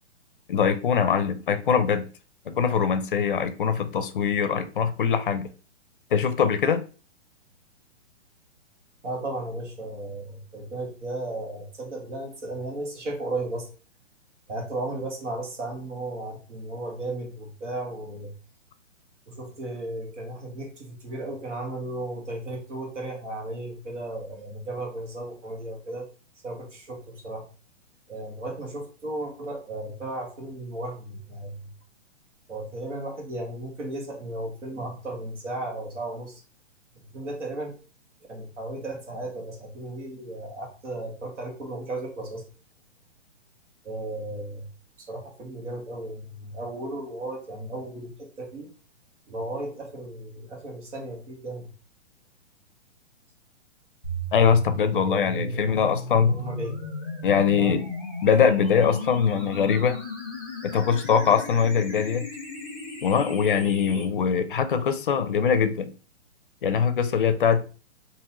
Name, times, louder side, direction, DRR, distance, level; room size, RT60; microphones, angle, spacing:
voice 1, 0.5-2.1 2.5-5.5 6.1-6.8 54.3-56.4 57.2-57.9 58.2-60.0 60.6-62.3 63.0-65.9 66.6-67.7, left 7 dB, 45° left, 10 dB, 0.5 m, -22 dB
voice 2, 9.0-13.7 14.5-18.3 19.3-26.1 26.4-27.5 28.1-31.7 32.5-36.4 37.0-37.7 38.3-42.5 43.8-44.7 45.0-48.7 49.3-51.7 55.0-55.8 56.3-56.8 57.6-57.8, right 2 dB, 75° right, 1 dB, 1.7 m, -35 dB
sound 1, 54.0-64.0, left 1 dB, 10° right, 0.5 m, -35 dB
3.8 x 2.9 x 2.9 m, 0.36 s
hypercardioid pair, 170°, 36 cm